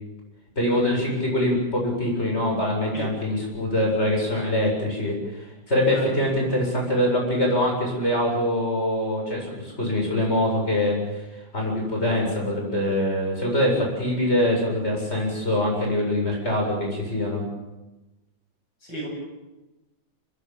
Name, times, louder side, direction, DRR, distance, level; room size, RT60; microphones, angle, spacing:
voice 1, 0.6-11.0 11.5-17.4, left 1 dB, 35° left, 0 dB, 8.1 m, -24 dB
voice 2, 2.9-3.1 5.9-6.1 18.8-19.1, equal, 70° left, 1 dB, 8.9 m, -33 dB
26.5 x 21.5 x 7.4 m, 1.0 s
omnidirectional pair, 2.0 m